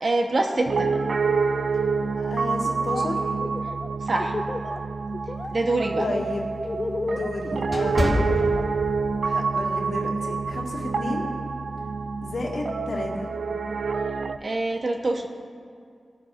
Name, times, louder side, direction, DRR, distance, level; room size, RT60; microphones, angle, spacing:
voice 1, 0.0-0.9 4.1-4.3 5.5-6.1 14.4-15.3, right 2 dB, 45° right, 3 dB, 1.0 m, -25 dB
Piano, 0.7-14.4, right 4 dB, 70° right, 0.3 m, -27 dB
voice 2, 2.1-3.3 6.0-6.4 7.1-8.5 9.2-11.3 12.2-13.3, left 2 dB, 75° left, -3 dB, 2.0 m, -32 dB
Laughter, 2.6-3.1 3.4-4.8 5.1-5.5 5.8-8.7, left 2 dB, 35° left, 0.6 m, -32 dB
sound 1, 5.4-9.2 9.6-9.8 10.4-10.7, left 1 dB, 20° left, 1.4 m, -28 dB
19.0 x 11.5 x 2.6 m, 2.3 s
wide cardioid pair, 130°, 0 cm